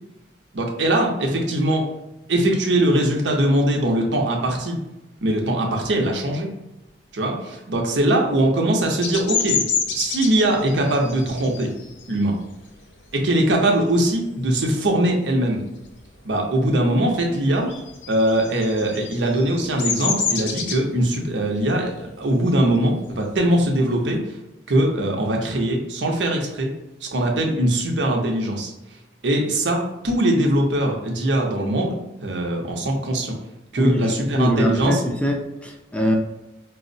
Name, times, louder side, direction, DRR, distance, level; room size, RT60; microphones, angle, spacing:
voice 1, 0.5-1.8 2.3-4.8 5.2-6.5 7.1-9.6 9.9-11.7 12.1-12.4 13.1-15.6 16.2-17.7 18.1-24.2 24.7-26.7 27.0-28.7 29.2-32.0 32.2-33.4 33.7-35.0, right 1 dB, 85° right, 1 dB, 0.7 m, -21 dB
Bird vocalization bird call bird song, 9.0-14.2 14.6-15.0 15.3-16.5 16.8-24.1, left 6 dB, 90° left, 0.5 m, -29 dB
voice 2, 33.8-36.2, left 1 dB, 5° left, 2 dB, 0.4 m, -23 dB
4.5 x 2.0 x 2.6 m, 0.94 s
head